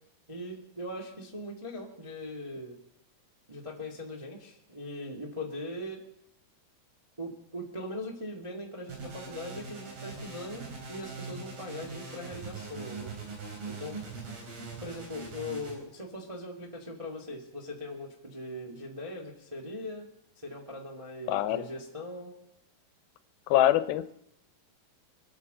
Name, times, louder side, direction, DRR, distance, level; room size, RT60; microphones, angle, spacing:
voice 1, 0.3-2.8 3.5-6.0 7.2-13.1 13.7-14.0 14.8-20.1 20.4-22.3, left 1 dB, 15° right, -1 dB, 1.0 m, -40 dB
sound 1, 8.9-15.8, right 4 dB, 75° right, 5.6 m, -42 dB
voice 2, 21.3-21.7 23.5-24.1, left 13 dB, 90° left, 13 dB, 2.6 m, -24 dB
23.5 x 8.8 x 6.6 m, 0.79 s
omnidirectional pair, 4.2 m